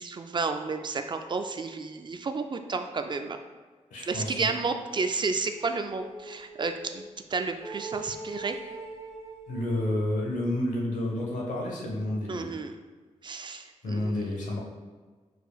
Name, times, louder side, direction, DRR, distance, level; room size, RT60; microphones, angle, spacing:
voice 1, 0.0-3.4 4.1-8.6 12.3-12.8 13.2-14.3, right 4 dB, 40° right, 7 dB, 0.3 m, -31 dB
voice 2, 3.9-4.5 9.5-12.5 13.8-14.6, left 1 dB, 90° left, -2 dB, 1.1 m, -30 dB
sound 1, 5.5-7.1 7.6-10.4, right 2 dB, 60° left, 1.4 m, -43 dB
5.0 x 4.5 x 2.3 m, 1.4 s
wide cardioid pair, 95°, 13 cm